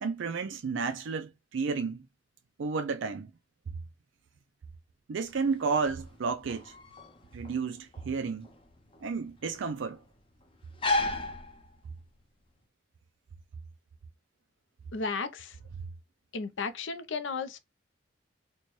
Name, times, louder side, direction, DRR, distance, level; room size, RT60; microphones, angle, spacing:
voice 1, 0.0-2.0 2.6-3.3 5.1-6.7 7.3-8.5 9.0-10.0, right 5 dB, 70° right, 0.4 m, -32 dB
sound 1, 5.2-12.2, left 2 dB, 25° left, 0.6 m, -36 dB
voice 2, 14.9-15.5 16.3-17.6, left 4 dB, 75° left, 0.6 m, -34 dB
4.3 x 2.2 x 3.0 m
head